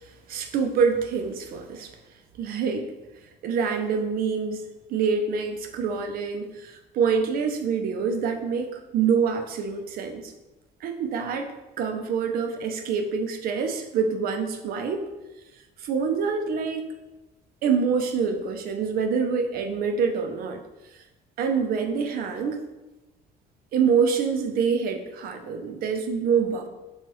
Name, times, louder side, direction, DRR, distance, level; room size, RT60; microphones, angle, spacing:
voice 1, 0.3-1.9 2.4-2.9 3.4-4.6 4.9-10.3 10.8-15.1 15.8-16.9 17.6-20.6 21.4-22.6 23.7-26.7, right 6 dB, 60° right, 5 dB, 0.4 m, -26 dB
3.0 x 2.3 x 2.9 m, 1.1 s
cardioid pair, 110°, 17 cm